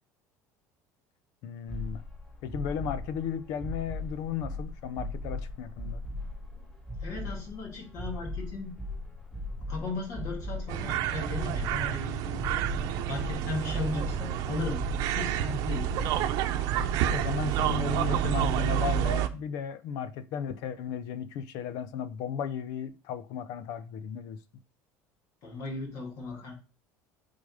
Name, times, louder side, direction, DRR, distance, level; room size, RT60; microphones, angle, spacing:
voice 1, 1.4-2.0 2.4-6.0 17.1-24.4, left 8 dB, 70° left, 0.8 m, -35 dB
sound 1, 1.7-19.1, left 2 dB, 20° left, 4.8 m, -38 dB
voice 2, 7.0-8.7 9.7-12.6 13.1-14.8 15.1-15.9 25.4-26.5, left 3 dB, 55° left, 2.6 m, -36 dB
sound 2, 10.7-19.3, right 12 dB, 65° right, 0.8 m, -29 dB
8.4 x 4.0 x 5.0 m
cardioid pair, 125°, 7 cm